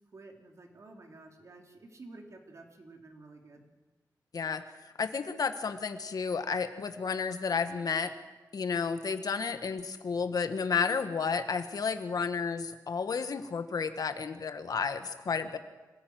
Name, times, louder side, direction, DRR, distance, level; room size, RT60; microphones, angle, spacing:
voice 1, 0.1-3.6, right 2 dB, 45° right, 3 dB, 3.2 m, -51 dB
voice 2, 5.0-8.1 8.5-15.6, left 5 dB, 65° left, 9 dB, 1.5 m, -32 dB
26.0 x 16.5 x 9.4 m, 1.2 s
wide cardioid pair, 160°, 7 cm